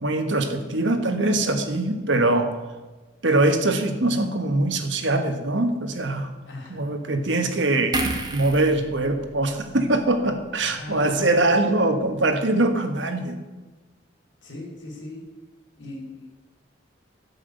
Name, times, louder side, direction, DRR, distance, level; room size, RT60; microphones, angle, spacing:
voice 1, 0.0-2.5 3.2-6.3 6.7-13.4, right 2 dB, 75° right, 6 dB, 1.5 m, -22 dB
voice 2, 6.4-7.6 10.6-11.7 14.4-15.2 15.8-16.3, left 1 dB, 80° left, -1 dB, 3.8 m, -39 dB
sound 1, 7.9-11.3 11.6-11.8, right 2 dB, 20° right, 1.3 m, -33 dB
12.5 x 6.0 x 8.1 m, 1.2 s
head